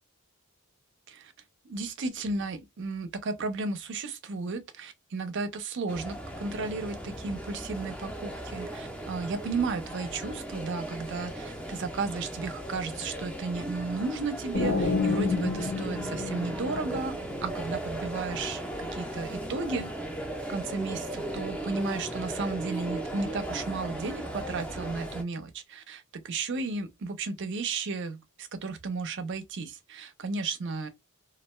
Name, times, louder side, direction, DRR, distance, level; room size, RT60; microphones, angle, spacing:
voice 1, 1.6-18.6 18.9-19.9 20.5-30.9, right 4 dB, 55° right, 0.5 m, -34 dB
sound 1, 5.9-25.2, right 1 dB, 5° left, 0.5 m, -37 dB
sound 2, 14.5-17.3, left 4 dB, 70° left, 0.8 m, -29 dB
2.4 x 2.2 x 3.0 m
head